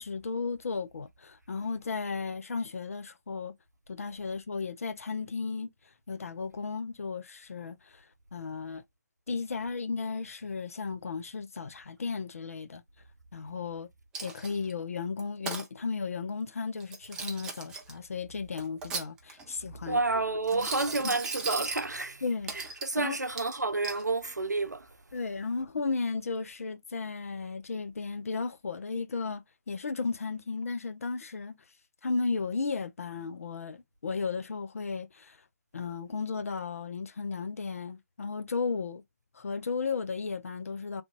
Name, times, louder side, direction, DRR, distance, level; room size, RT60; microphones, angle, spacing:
voice 1, 0.0-3.6 3.9-5.7 6.1-8.0 8.3-8.8 9.3-12.8 13.3-13.9 14.2-20.0 20.5-20.6 21.0-21.1 22.2-23.2 25.1-31.6 32.0-35.4 35.7-39.0 39.3-41.0, left 4 dB, 55° left, 0.5 m, -34 dB
Coin (dropping), 14.1-14.7 15.2-15.7 16.8-17.9 18.6-19.5 20.4-21.9 22.5-23.0 23.4-24.0, right 4 dB, 10° right, 0.4 m, -37 dB
voice 2, 19.9-22.2 22.5-24.9, right 3 dB, 80° right, 0.6 m, -30 dB
3.4 x 2.4 x 2.8 m
figure-of-eight pair, 140°, 9 cm